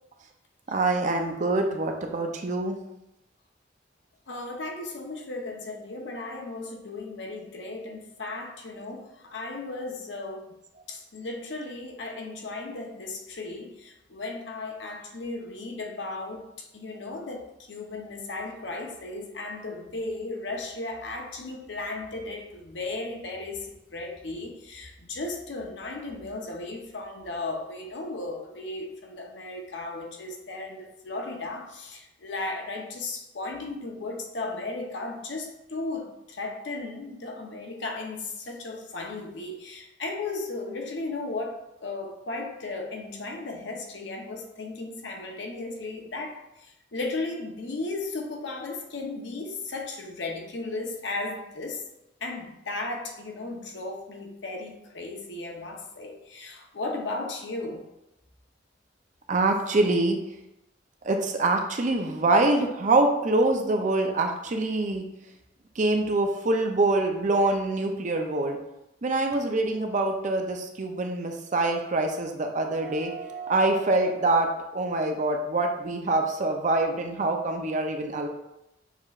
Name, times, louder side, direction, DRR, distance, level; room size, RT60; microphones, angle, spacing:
voice 1, 0.7-2.8 59.3-60.2 61.0-65.0 65.8-68.6 69.0-78.3, right 2 dB, 40° right, 4 dB, 0.5 m, -25 dB
voice 2, 4.3-10.5 10.9-51.8 52.2-57.8, left 2 dB, 70° left, 2 dB, 0.8 m, -35 dB
6.6 x 3.0 x 2.4 m, 0.88 s
head